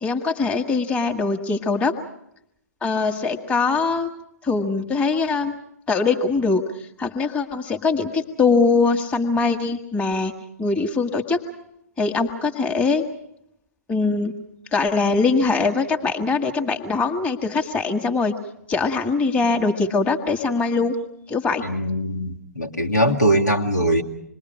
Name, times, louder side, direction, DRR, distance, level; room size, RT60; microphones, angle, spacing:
voice 1, 0.0-1.9 2.8-4.1 4.4-5.5 5.9-6.6 7.0-10.3 10.6-11.4 12.0-13.0 13.9-14.4 14.7-18.3 18.7-20.9 21.3-21.6, left 4 dB, 15° left, 2 dB, 1.5 m, -22 dB
voice 2, 21.6-24.0, right 1 dB, 80° left, 0 dB, 1.9 m, -21 dB
26.5 x 21.0 x 6.3 m, 0.78 s
figure-of-eight pair, 115°, 9 cm